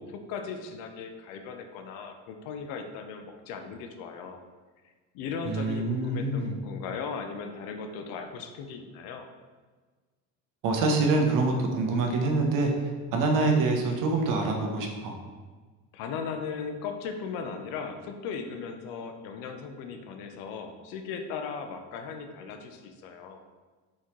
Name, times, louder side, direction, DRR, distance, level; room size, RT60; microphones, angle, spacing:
voice 1, 0.0-4.4 5.1-9.3 15.9-23.4, left 5 dB, 80° left, 5 dB, 0.6 m, -37 dB
voice 2, 5.4-6.6 10.6-15.1, right 3 dB, 65° right, 2 dB, 0.9 m, -26 dB
4.1 x 3.8 x 3.0 m, 1.4 s
cardioid pair, 135°, 34 cm